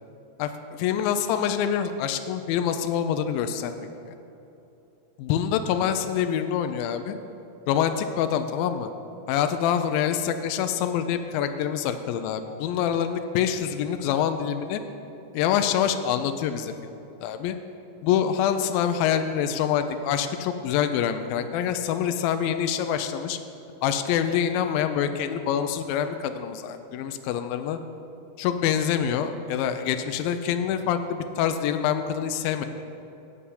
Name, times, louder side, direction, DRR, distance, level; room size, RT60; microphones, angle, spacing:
voice 1, 0.4-3.8 4.1-4.2 5.2-7.1 7.7-8.9 9.3-14.8 15.3-16.7 17.2-17.6 18.0-23.4 23.8-27.8 28.4-32.7, left 9 dB, 85° left, 8 dB, 2.0 m, -26 dB
9.7 x 5.6 x 8.3 m, 2.9 s
omnidirectional pair, 4.7 m